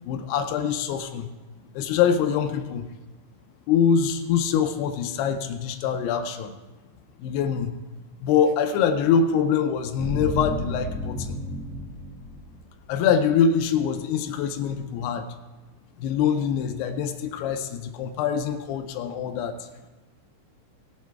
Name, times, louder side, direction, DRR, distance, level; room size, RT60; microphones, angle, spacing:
voice 1, 0.1-1.3 1.7-2.9 3.7-6.5 7.2-7.7 8.2-11.4 12.9-15.3 16.0-19.7, left 7 dB, 90° left, 6 dB, 2.3 m, -24 dB
sound 1, 10.0-12.9 13.1-13.2, equal, 50° right, 4.1 m, -32 dB
18.0 x 7.1 x 4.6 m, 1.2 s
omnidirectional pair, 5.5 m